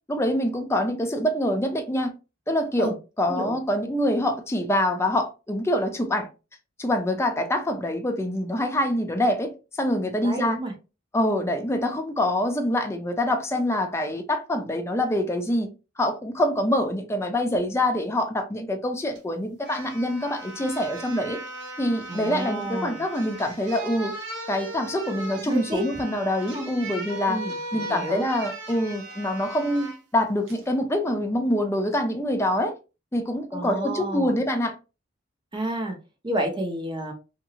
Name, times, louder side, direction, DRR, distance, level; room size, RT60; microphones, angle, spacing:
voice 1, 0.1-2.1 2.5-6.3 6.8-10.6 11.1-15.7 16.0-21.4 21.8-24.1 24.5-27.4 27.7-32.7 33.1-34.7, left 1 dB, 15° left, 0.5 m, -25 dB
voice 2, 10.2-10.7 22.1-23.0 25.4-25.8 26.5-26.7 27.3-28.3 33.5-34.4 35.5-36.0 36.2-37.1, right 1 dB, 25° right, 0.7 m, -30 dB
sound 1, 19.1-19.2 19.6-30.0 30.5-30.6, right 1 dB, 65° right, 0.9 m, -38 dB
2.8 x 2.7 x 2.7 m
head